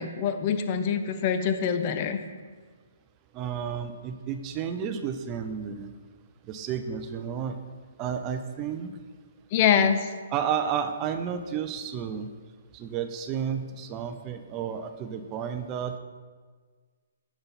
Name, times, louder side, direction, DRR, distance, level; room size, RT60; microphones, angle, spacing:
voice 1, 0.0-2.2 9.5-10.1, left 7 dB, 40° left, 8 dB, 0.4 m, -24 dB
voice 2, 3.3-5.9 6.5-7.6 8.0-8.9 10.3-12.3 12.7-16.0, right 8 dB, 30° right, 8 dB, 0.4 m, -31 dB
6.8 x 3.8 x 4.1 m, 1.5 s
hypercardioid pair, 135°, 0 cm